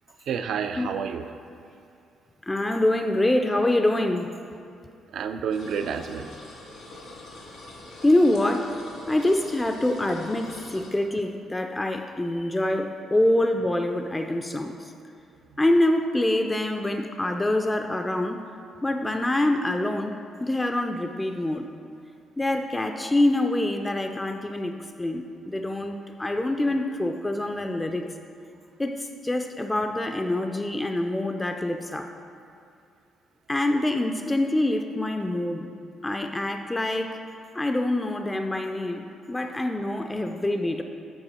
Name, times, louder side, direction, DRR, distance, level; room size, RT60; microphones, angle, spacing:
voice 1, 0.3-1.3 5.1-6.3, right 7 dB, 70° right, 8 dB, 0.4 m, -29 dB
voice 2, 2.4-4.3 8.0-14.9 15.6-18.4 18.8-20.1 20.4-21.7 22.4-28.0 28.8-32.1 33.5-35.7 36.0-37.2 37.5-40.8, left 1 dB, 15° left, 5 dB, 0.3 m, -25 dB
sound 1, 5.5-10.9, left 1 dB, 80° left, 1.7 m, -44 dB
7.8 x 4.5 x 4.2 m, 2.5 s
cardioid pair, 90°, 0 cm